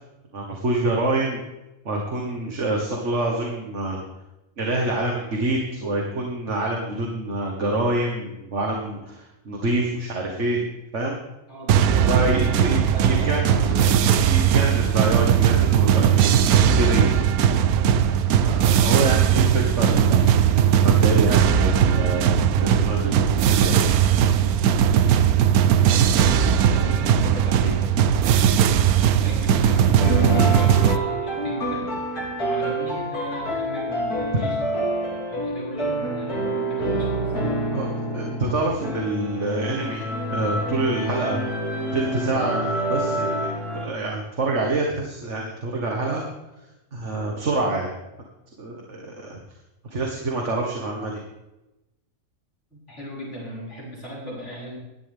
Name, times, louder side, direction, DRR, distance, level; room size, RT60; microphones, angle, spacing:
voice 1, 0.3-1.4 1.9-4.0 4.6-10.7 10.9-11.2 11.9-13.4 14.2-16.2 16.5-17.3 17.9-20.3 20.8-23.7 29.4-29.6 34.4-34.5 37.7-41.4 41.9-43.3 43.8-46.3 46.9-47.9 48.6-49.4 49.9-51.2, right 2 dB, 50° right, 0 dB, 2.0 m, -26 dB
voice 2, 11.5-11.9 12.3-14.0 25.9-28.4 29.2-34.6 35.3-37.3 52.7-54.8, equal, 50° left, -6 dB, 6.6 m, -36 dB
sound 1, 11.7-31.0, right 8 dB, 80° right, 1.1 m, -18 dB
sound 2, 30.0-43.9, right 1 dB, 75° left, 3.6 m, -27 dB
16.5 x 12.0 x 3.6 m, 0.97 s
omnidirectional pair, 1.6 m